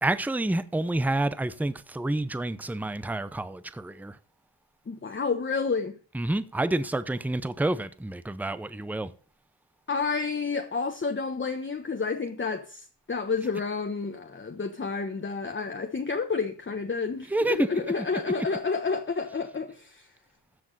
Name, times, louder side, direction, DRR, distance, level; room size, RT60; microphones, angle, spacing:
voice 1, 0.0-4.2 6.1-9.1 17.3-17.7, right 2 dB, 5° right, 0.7 m, -28 dB
voice 2, 4.9-6.0 9.9-20.1, left 4 dB, 25° left, 1.1 m, -30 dB
14.0 x 7.2 x 4.0 m
cardioid pair, 85°, 44 cm